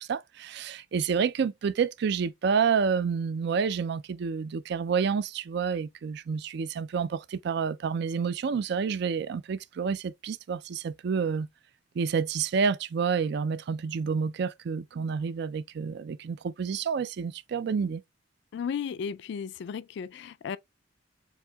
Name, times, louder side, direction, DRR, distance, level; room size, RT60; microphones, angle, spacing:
voice 1, 0.0-11.5 12.0-18.0, right 6 dB, 65° right, 0.4 m, -29 dB
voice 2, 18.5-20.6, left 7 dB, 65° left, 0.3 m, -34 dB
7.1 x 2.8 x 2.2 m
head